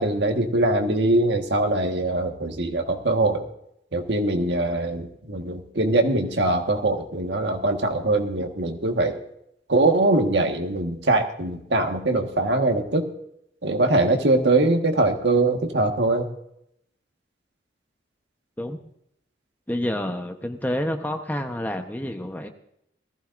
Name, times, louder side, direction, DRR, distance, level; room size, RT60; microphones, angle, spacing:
voice 1, 0.0-3.5 3.9-9.2 9.7-13.1 13.6-16.3, right 2 dB, 75° right, 4 dB, 1.5 m, -22 dB
voice 2, 19.7-22.5, left 1 dB, 10° left, 5 dB, 0.9 m, -28 dB
19.0 x 14.5 x 2.6 m, 0.77 s
head